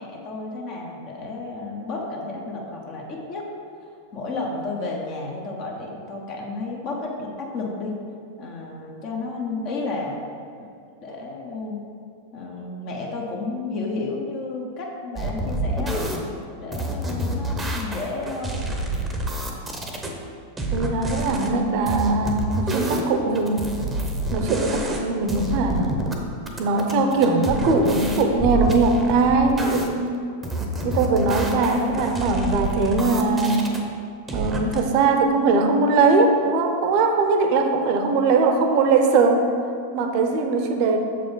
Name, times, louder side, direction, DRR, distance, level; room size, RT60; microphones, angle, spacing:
voice 1, 0.0-3.5 4.1-7.9 8.4-10.6 11.0-11.8 12.3-16.1 16.6-18.8, left 3 dB, 40° left, -1 dB, 1.0 m, -32 dB
sound 1, 15.2-16.2 16.7-20.1 20.6-21.5 21.9-23.1 23.3-25.0 25.3-26.1 26.5-29.9 30.4-33.8 34.3-34.8, right 1 dB, 10° right, 0.8 m, -28 dB
voice 2, 20.7-23.6 24.3-25.9 26.6-30.1 30.8-33.7 34.3-39.4 39.9-41.0, right 3 dB, 45° right, 5 dB, 0.7 m, -20 dB
6.9 x 5.0 x 3.9 m, 2.4 s
figure-of-eight pair, 90°, 0 cm